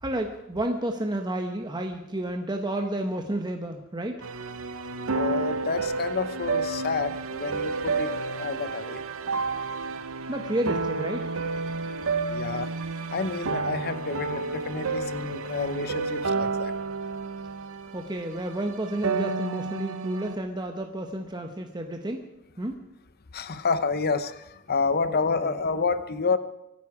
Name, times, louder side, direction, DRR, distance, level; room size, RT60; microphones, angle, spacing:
voice 1, 0.0-4.2 10.3-11.3 17.9-22.2 22.6-22.8 25.1-25.2 25.4-25.5, right 1 dB, 20° right, 4 dB, 1.0 m, -31 dB
sound 1, 4.2-20.4, right 4 dB, 65° right, 1.0 m, -31 dB
voice 2, 5.1-9.0 12.3-12.7 13.1-16.7 23.3-26.4, left 4 dB, 45° left, 12 dB, 0.8 m, -29 dB
24.5 x 9.7 x 4.9 m, 0.92 s
head